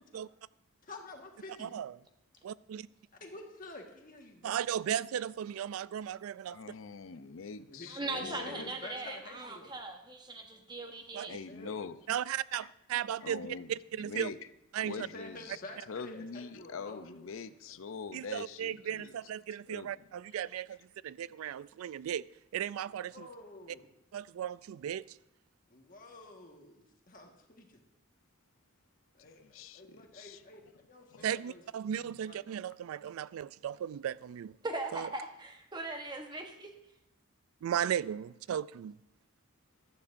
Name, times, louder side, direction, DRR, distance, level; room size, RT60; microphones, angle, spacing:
voice 1, 0.9-1.8 3.2-4.6 5.0-5.1 7.7-9.7 11.3-11.7 14.9-17.8 22.9-23.9 25.7-27.8 29.1-31.6 32.2-32.5, left 2 dB, 40° left, 1.5 m, -50 dB
voice 2, 1.6-1.9 2.4-2.9 4.4-6.6 11.1-11.3 12.1-14.3 14.7-15.1 18.1-20.8 21.0-22.3 22.5-23.3 24.1-25.2 31.2-34.6 34.9-35.1 37.6-39.0, right 9 dB, 90° right, 0.3 m, -36 dB
voice 3, 6.5-8.7 11.3-12.0 12.5-12.7 13.2-14.4 14.8-15.6 15.9-19.1 19.7-19.9 29.2-29.8 30.2-30.4 31.1-31.3 31.9-32.2, left 5 dB, 70° left, 0.5 m, -44 dB
voice 4, 7.9-11.4 34.6-36.7, right 2 dB, 20° right, 1.0 m, -40 dB
16.5 x 12.0 x 2.6 m
head